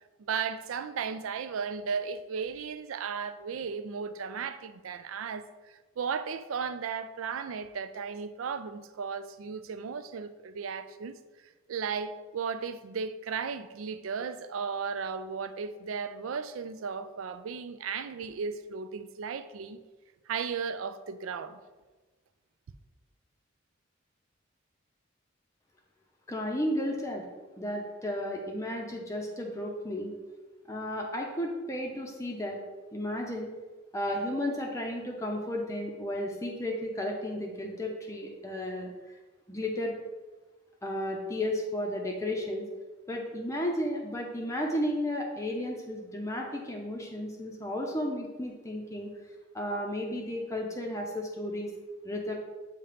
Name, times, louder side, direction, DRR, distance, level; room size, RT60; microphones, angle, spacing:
voice 1, 0.2-11.2 11.7-19.8 20.3-21.6, right 6 dB, 85° right, 0.4 m, -35 dB
voice 2, 26.3-27.2 27.6-30.1 30.6-32.6 32.9-33.5 33.9-38.9 39.5-39.9 40.8-42.6 43.1-49.1 49.5-51.7 52.0-52.3, left 1 dB, 15° left, 0.6 m, -33 dB
7.2 x 2.8 x 5.0 m
head